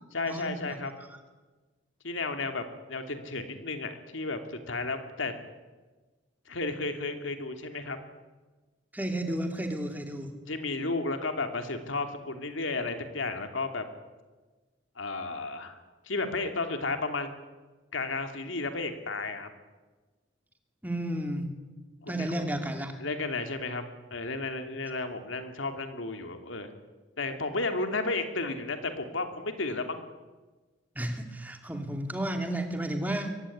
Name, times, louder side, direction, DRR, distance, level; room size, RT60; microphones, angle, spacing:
voice 1, 0.1-0.9 2.0-5.3 6.5-8.0 10.5-13.8 15.0-15.8 16.0-17.3 17.9-19.5 22.0-22.3 23.0-23.8 24.1-26.7 27.2-30.0, left 3 dB, 90° left, 6 dB, 2.7 m, -33 dB
voice 2, 8.9-10.3 20.8-21.5 22.1-22.9 31.0-33.3, right 1 dB, 10° right, 5 dB, 2.5 m, -32 dB
23.0 x 16.5 x 9.9 m, 1.3 s
head